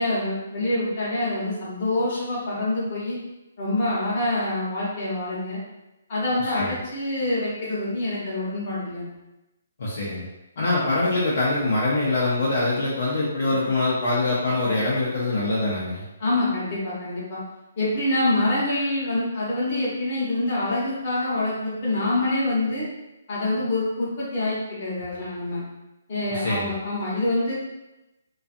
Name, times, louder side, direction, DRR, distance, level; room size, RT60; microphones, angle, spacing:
voice 1, 0.0-3.2 3.6-5.6 6.1-9.1 16.2-17.4 17.8-22.9 23.3-25.6 26.1-27.5, left 2 dB, 35° left, -7 dB, 1.0 m, -26 dB
voice 2, 9.8-10.3 10.6-16.0 26.3-26.7, left 2 dB, 55° left, -7 dB, 0.6 m, -24 dB
2.5 x 2.3 x 2.5 m, 0.96 s
hypercardioid pair, 170°, 0 cm